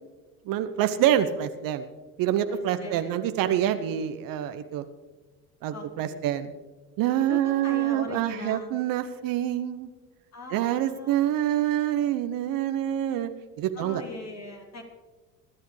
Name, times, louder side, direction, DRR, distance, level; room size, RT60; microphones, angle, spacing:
voice 1, 0.5-1.9 2.2-4.8 5.6-6.5 7.0-9.9 10.5-13.3 13.6-14.0, right 11 dB, 50° right, 10 dB, 1.0 m, -26 dB
voice 2, 2.5-3.2 5.7-6.2 7.3-8.8 10.3-11.2 13.7-14.8, left 3 dB, 35° left, 2 dB, 1.8 m, -40 dB
24.0 x 11.5 x 3.3 m, 1.3 s
figure-of-eight pair, 60°, 44 cm